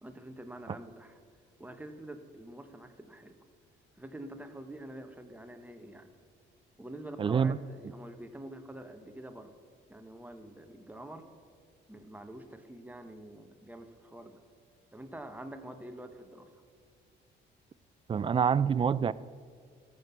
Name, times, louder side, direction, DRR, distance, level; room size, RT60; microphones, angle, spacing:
voice 1, 0.0-1.2 1.6-3.4 4.0-6.1 6.8-9.6 9.9-11.2 11.9-14.4 14.9-16.5, right 1 dB, 10° right, 7 dB, 1.1 m, -46 dB
voice 2, 7.2-7.6 18.1-19.1, right 7 dB, 25° right, 18 dB, 0.3 m, -26 dB
14.0 x 6.1 x 6.8 m, 2.1 s
cardioid pair, 90°, 20 cm